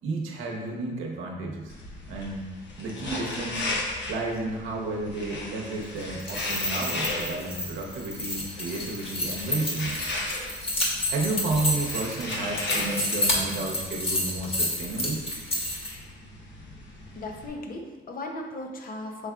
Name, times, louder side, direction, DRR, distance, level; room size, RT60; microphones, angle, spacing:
voice 1, 0.0-1.7 2.1-2.5 2.8-3.7 4.1-10.0 11.1-15.2, right 3 dB, 85° right, -1 dB, 0.8 m, -32 dB
sound 1, 1.7-17.5, left 2 dB, 65° left, 1.0 m, -36 dB
sound 2, 6.1-15.9, left 1 dB, 30° left, 1.1 m, -30 dB
voice 2, 17.1-19.3, left 2 dB, 45° left, 3 dB, 0.6 m, -36 dB
6.0 x 3.5 x 2.3 m, 1.3 s
cardioid pair, 90°, 20 cm